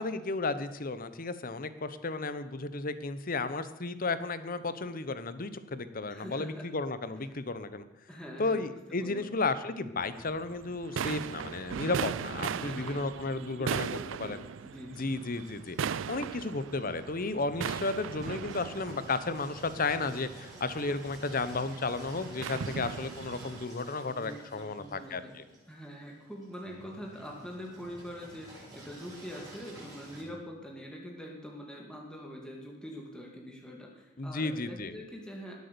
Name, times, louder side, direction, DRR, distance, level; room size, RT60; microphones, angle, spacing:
voice 1, 0.0-7.8 8.4-13.9 14.2-14.4 14.9-25.4 34.2-34.9, left 3 dB, 45° left, 13 dB, 0.9 m, -33 dB
voice 2, 6.1-6.7 8.1-9.3 12.4-15.1 22.4-22.9 24.1-25.3 25.7-35.5, equal, 5° left, -1 dB, 2.2 m, -44 dB
sound 1, 10.0-23.6, right 7 dB, 70° right, 0.4 m, -39 dB
Engine, 15.1-30.2, right 1 dB, 20° right, 7.2 m, -51 dB
19.0 x 8.4 x 6.9 m, 0.96 s
head